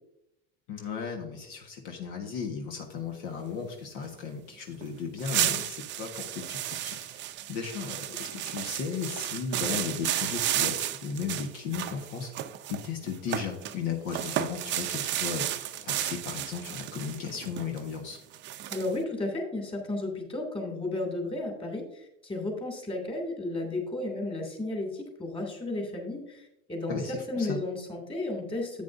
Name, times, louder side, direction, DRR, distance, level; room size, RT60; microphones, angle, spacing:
voice 1, 0.7-7.2 7.5-12.3 12.7-15.5 15.8-18.2 26.9-27.6, left 6 dB, 70° left, 2 dB, 1.5 m, -35 dB
sound 1, 4.8-4.9 5.2-13.8 14.1-18.9, right 12 dB, 40° right, 0.6 m, -33 dB
voice 2, 18.7-28.8, left 2 dB, 20° left, 2 dB, 2.6 m, -33 dB
10.5 x 8.6 x 2.6 m, 0.82 s
supercardioid pair, 115°, 29 cm